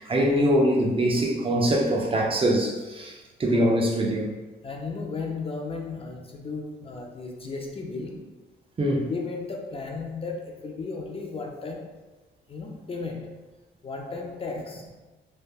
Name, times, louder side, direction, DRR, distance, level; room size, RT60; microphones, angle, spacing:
voice 1, 0.0-4.3 8.8-9.1, equal, 30° right, -1 dB, 0.5 m, -23 dB
voice 2, 4.6-8.4 9.1-11.9 12.5-13.4 13.8-14.9, left 4 dB, 30° left, 1 dB, 0.4 m, -35 dB
3.2 x 2.1 x 2.3 m, 1.2 s
cardioid pair, 90°, 20 cm